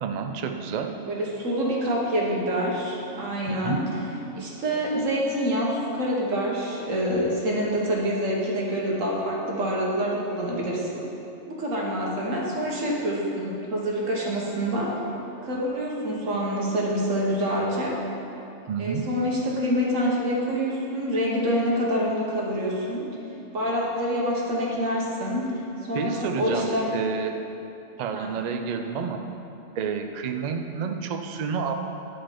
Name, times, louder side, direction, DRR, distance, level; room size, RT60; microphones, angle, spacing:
voice 1, 0.0-0.9 3.5-3.8 18.7-19.1 25.9-27.3 28.0-29.2 29.7-31.7, right 6 dB, 60° right, 4 dB, 0.4 m, -29 dB
voice 2, 1.1-3.9 4.3-11.1 11.5-15.0 15.4-18.0 18.8-23.1 23.5-26.9 28.1-28.3, equal, 85° right, -3 dB, 1.6 m, -26 dB
9.7 x 5.1 x 4.4 m, 2.8 s
omnidirectional pair, 1.3 m